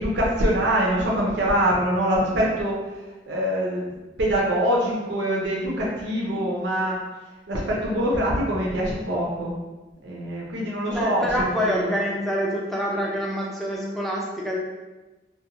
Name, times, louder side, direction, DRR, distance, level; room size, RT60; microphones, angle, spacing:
voice 1, 0.0-2.8 3.3-7.0 7.5-9.5 10.0-11.3 11.6-11.9, equal, 80° right, -4 dB, 0.5 m, -24 dB
voice 2, 10.9-14.6, equal, ahead, -4 dB, 0.4 m, -26 dB
2.4 x 2.1 x 2.8 m, 1.2 s
head